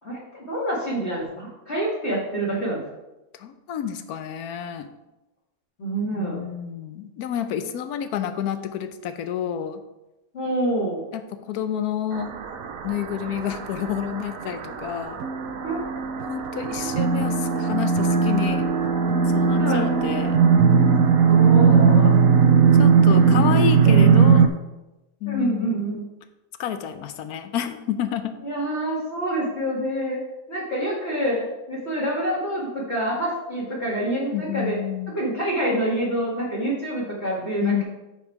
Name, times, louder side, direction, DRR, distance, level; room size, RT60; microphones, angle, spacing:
voice 1, 0.0-2.8 5.8-6.4 10.3-11.0 15.6-15.8 19.6-19.9 21.3-22.1 25.3-26.0 28.4-30.2 30.5-34.8 35.1-37.8, right 1 dB, 50° left, -8 dB, 2.2 m, -27 dB
voice 2, 3.3-4.9 6.1-9.8 11.1-12.3 12.8-15.3 16.2-18.6 19.3-20.4 20.9-21.6 22.8-24.5 25.2-25.9 26.6-28.4 34.3-35.2 37.6-37.8, left 9 dB, 90° left, 9 dB, 1.2 m, -29 dB
sound 1, 12.1-24.5, right 6 dB, 70° right, 1.0 m, -19 dB
8.5 x 4.6 x 4.6 m, 1.0 s
omnidirectional pair, 1.5 m